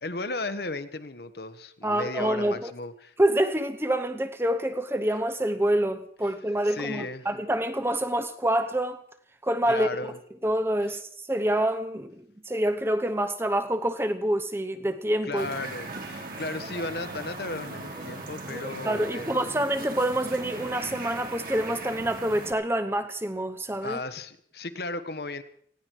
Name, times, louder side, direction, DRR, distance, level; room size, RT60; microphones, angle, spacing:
voice 1, 0.0-3.1 6.6-7.3 9.7-10.2 15.2-19.5 23.8-25.4, left 2 dB, 60° left, 1.2 m, -35 dB
voice 2, 1.8-2.7 3.2-9.0 9.4-9.9 10.4-15.5 18.8-24.0, right 1 dB, 15° right, 0.9 m, -27 dB
sound 1, 15.4-22.5, right 2 dB, 50° right, 3.1 m, -38 dB
19.5 x 16.0 x 4.6 m
head